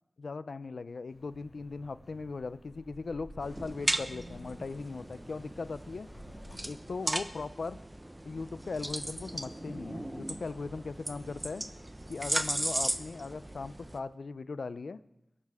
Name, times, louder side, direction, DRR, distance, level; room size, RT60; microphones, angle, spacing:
voice 1, 0.2-6.1 6.6-7.8 8.2-11.7 12.1-15.0, left 4 dB, 80° left, 14 dB, 0.5 m, -39 dB
Wind, 1.1-6.6, equal, 40° left, 4.7 m, -52 dB
sound 1, 3.4-14.0, right 1 dB, 20° right, 0.8 m, -37 dB
22.0 x 12.0 x 3.6 m, 0.86 s
wide cardioid pair, 75°, 0 cm